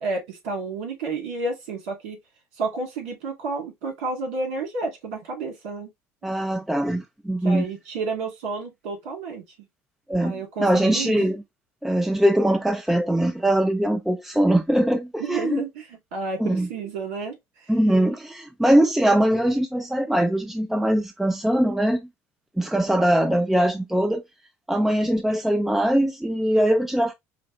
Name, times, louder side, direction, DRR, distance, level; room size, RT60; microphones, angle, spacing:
voice 1, 0.0-2.2 2.6-5.9 7.4-9.4 10.2-11.2 15.2-15.7 16.1-17.7, right 3 dB, 80° right, 2.2 m, -31 dB
voice 2, 6.2-7.6 10.1-11.4 11.8-15.6 16.4-16.7 17.7-22.0 22.6-24.2 24.7-27.1, right 1 dB, 5° right, 0.6 m, -21 dB
5.0 x 2.2 x 3.0 m
supercardioid pair, 90°, 7 cm